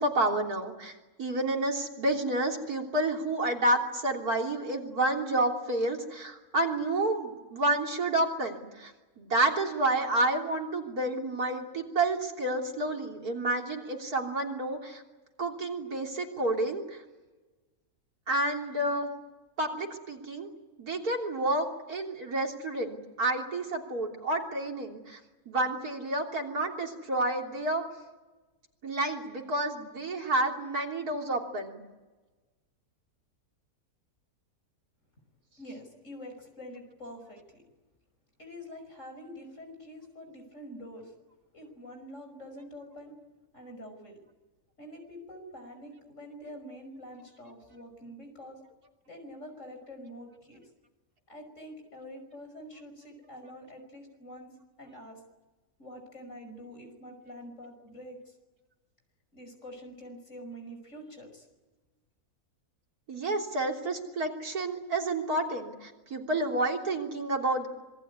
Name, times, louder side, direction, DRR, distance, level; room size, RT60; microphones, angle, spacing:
voice 1, 0.0-8.9 9.2-15.0 15.4-17.0 18.3-19.1 19.6-20.5 20.8-25.2 25.5-27.8 28.8-31.8 63.1-67.7, right 2 dB, 75° right, 1 dB, 3.9 m, -30 dB
voice 2, 35.6-37.6 38.4-41.1 41.5-43.2 43.5-44.2 44.8-48.6 49.1-50.6 51.3-55.2 55.8-58.4 59.3-61.5, equal, 50° left, 5 dB, 6.0 m, -46 dB
26.5 x 21.5 x 9.6 m, 1.2 s
omnidirectional pair, 1.6 m